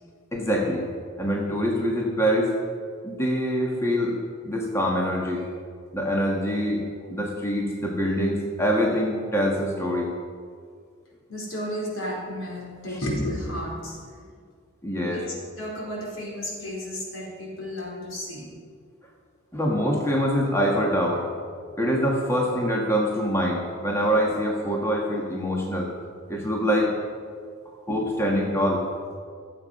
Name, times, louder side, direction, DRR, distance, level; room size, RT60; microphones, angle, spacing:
voice 1, 0.3-0.9 1.2-2.5 3.0-4.2 4.4-5.4 5.9-6.8 7.1-10.1 12.9-13.0 14.8-15.2 19.5-21.3 21.8-25.9 26.3-26.9 27.9-28.8, equal, 15° left, -2 dB, 1.8 m, -24 dB
voice 2, 11.3-14.1 15.0-18.5, equal, 75° left, -2 dB, 4.6 m, -33 dB
24.5 x 8.3 x 5.5 m, 2.1 s
head